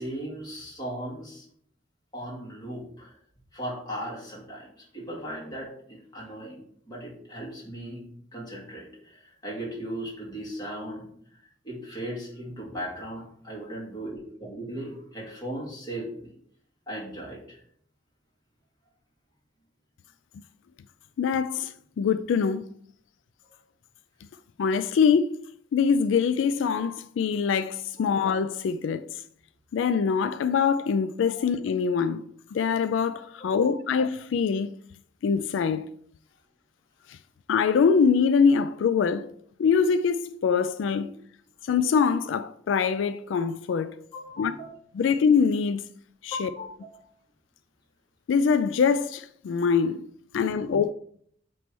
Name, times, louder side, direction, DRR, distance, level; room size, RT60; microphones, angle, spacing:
voice 1, 0.0-1.4 2.1-3.2 3.5-8.0 8.3-11.1 11.6-16.3 16.9-17.6 28.0-28.3 31.4-31.5 33.4-33.6 41.0-41.1 44.1-44.7 46.3-47.0, equal, 20° left, 2.2 m, -37 dB
voice 2, 21.2-22.7 24.6-25.3 25.7-29.2 29.7-32.2 32.5-34.7 35.2-35.9 37.1-37.2 37.5-39.3 39.6-41.1 41.7-43.9 44.4-44.5 44.9-45.9 46.2-46.5 48.3-50.0 50.3-50.9, left 6 dB, 85° left, 0.3 m, -24 dB
8.1 x 3.1 x 4.6 m
head